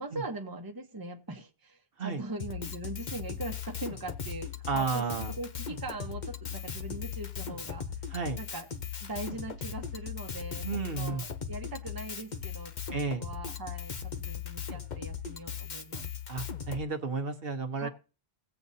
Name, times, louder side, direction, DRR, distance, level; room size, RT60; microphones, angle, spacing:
voice 1, 0.0-8.1 8.4-8.7 9.0-16.1 17.8-17.9, right 2 dB, 20° right, 3 dB, 1.0 m, -41 dB
Drum kit, 2.4-16.8, left 7 dB, 50° left, 0.9 m, -38 dB
voice 2, 4.7-5.3 8.1-8.4 10.6-11.3 12.9-13.2 16.3-17.9, right 4 dB, 65° right, 5 dB, 1.2 m, -32 dB
18.0 x 7.9 x 2.7 m, 0.32 s
omnidirectional pair, 1.0 m